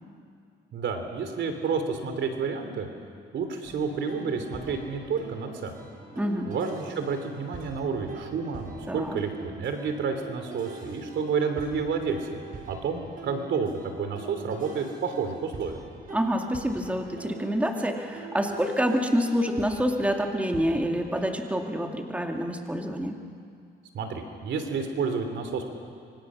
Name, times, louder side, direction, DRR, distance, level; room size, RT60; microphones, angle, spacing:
voice 1, 0.7-2.9 3.3-5.8 6.5-12.3 12.7-15.8 23.9-25.7, right 5 dB, 70° right, 6 dB, 3.2 m, -30 dB
sound 1, 3.6-21.4, right 4 dB, 45° right, 5.5 m, -44 dB
voice 2, 6.2-6.5 8.9-9.2 16.1-23.2, equal, 5° right, 3 dB, 2.2 m, -27 dB
25.5 x 25.0 x 6.3 m, 2.3 s
cardioid pair, 90°, 20 cm